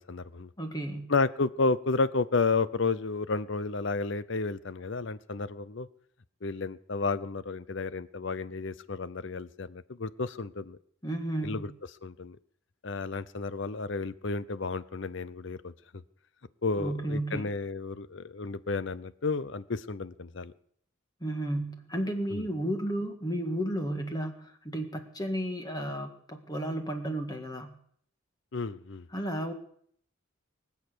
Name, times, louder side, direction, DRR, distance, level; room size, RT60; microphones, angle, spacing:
voice 1, 0.0-0.5 1.1-5.9 6.4-10.8 11.4-11.7 12.0-12.4 12.8-15.7 16.6-20.5 22.3-22.5 28.5-29.1, left 3 dB, 60° left, 16 dB, 0.7 m, -31 dB
voice 2, 0.6-1.1 11.0-11.7 16.8-17.5 21.2-27.8 29.1-29.5, right 1 dB, 20° left, 5 dB, 1.9 m, -33 dB
23.5 x 8.3 x 6.9 m, 0.63 s
head